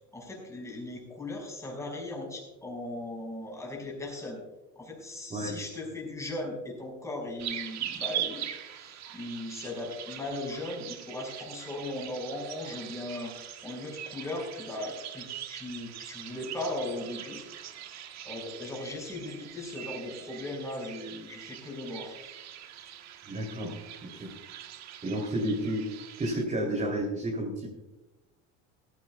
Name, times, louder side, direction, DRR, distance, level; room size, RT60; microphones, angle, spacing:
voice 1, 0.0-4.4 4.8-13.3 13.6-17.4 18.2-22.2, left 2 dB, 10° left, -1 dB, 5.5 m, -38 dB
sound 1, 7.4-26.4, right 11 dB, 50° right, 1.3 m, -42 dB
voice 2, 23.3-23.7 24.0-24.3 25.0-27.7, right 1 dB, 20° right, -2 dB, 3.2 m, -31 dB
17.0 x 15.5 x 2.3 m, 1.0 s
cardioid pair, 125°, 34 cm